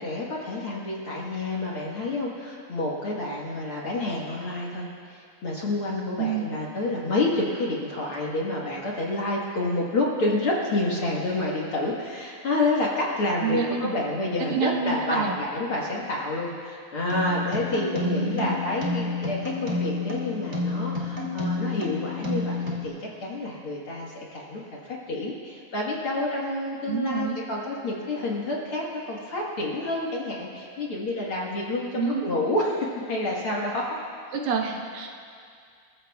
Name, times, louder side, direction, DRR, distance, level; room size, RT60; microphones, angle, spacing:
voice 1, 0.0-34.0, left 2 dB, 50° left, -4 dB, 1.8 m, -29 dB
voice 2, 13.4-13.9 14.4-15.4 18.0-18.6 26.9-27.4 32.0-32.3 34.3-35.1, right 6 dB, 85° right, 1 dB, 2.9 m, -28 dB
sound 1, 17.1-22.8, left 3 dB, 25° right, 2.0 m, -29 dB
29.0 x 14.5 x 2.3 m, 2.3 s
omnidirectional pair, 3.9 m